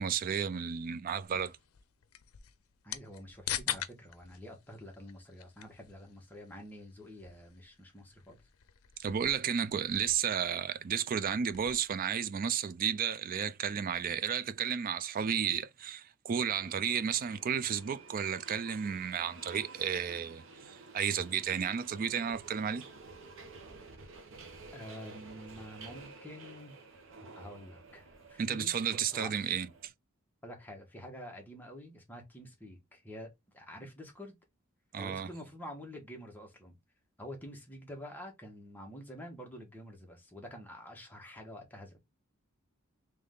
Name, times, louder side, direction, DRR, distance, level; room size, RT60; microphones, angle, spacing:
voice 1, 0.0-1.6 9.0-22.8 28.4-29.9 34.9-35.3, right 7 dB, 40° right, 0.4 m, -33 dB
sound 1, 1.2-11.9, left 11 dB, 85° left, 0.5 m, -45 dB
voice 2, 2.8-8.4 24.7-26.8 27.3-29.3 30.4-34.4 35.0-36.8 37.2-42.0, equal, 10° left, 1.2 m, -48 dB
Subway metro underground, 16.3-29.9, right 3 dB, 65° right, 1.0 m, -52 dB
3.6 x 3.2 x 3.7 m
head